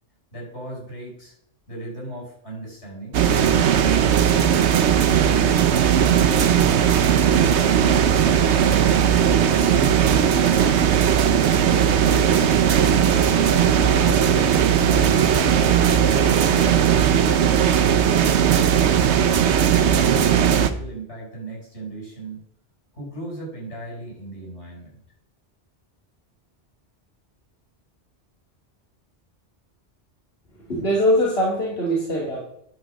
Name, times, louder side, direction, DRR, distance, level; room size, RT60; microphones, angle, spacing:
voice 1, 0.3-1.3 1.7-5.1 19.3-22.4 22.9-25.0, right 1 dB, 80° left, -3 dB, 5.5 m, -37 dB
sound 1, 3.1-20.7, right 8 dB, 80° right, 1.0 m, -18 dB
sound 2, 10.8-18.4, right 2 dB, 25° right, 1.4 m, -35 dB
voice 2, 30.7-32.4, equal, 65° left, -6 dB, 2.8 m, -22 dB
10.5 x 5.1 x 6.5 m, 0.70 s
omnidirectional pair, 1.1 m